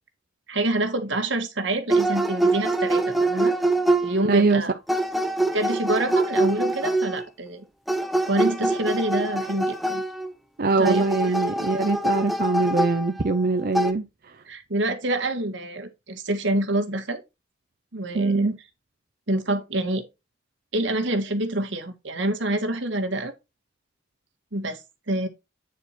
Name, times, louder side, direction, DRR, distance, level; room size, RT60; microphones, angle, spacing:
voice 1, 0.5-3.6 4.0-4.7 5.5-7.7 8.2-10.0 10.8-11.0 14.5-17.2 17.9-18.6 19.3-20.0 20.7-23.3 24.5-24.8 25.1-25.3, right 1 dB, 80° right, 1.7 m, -26 dB
sound 1, 1.9-4.3 4.9-7.2 7.9-10.3 10.8-13.4 13.7-13.9, right 2 dB, ahead, 0.7 m, -24 dB
voice 2, 4.3-4.6 10.6-14.1 18.1-18.5, right 3 dB, 50° right, 0.6 m, -22 dB
9.1 x 4.5 x 4.3 m
head